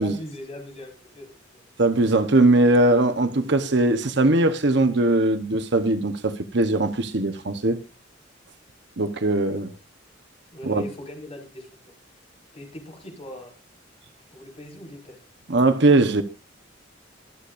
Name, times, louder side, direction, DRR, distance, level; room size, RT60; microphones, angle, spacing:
voice 1, 0.0-1.6 10.5-11.7 12.5-13.5 14.3-15.2, left 1 dB, 35° left, 5.2 m, -40 dB
voice 2, 1.8-7.8 9.0-9.7 10.7-10.8 15.5-16.2, right 2 dB, 60° right, 1.0 m, -20 dB
25.0 x 8.5 x 2.6 m
head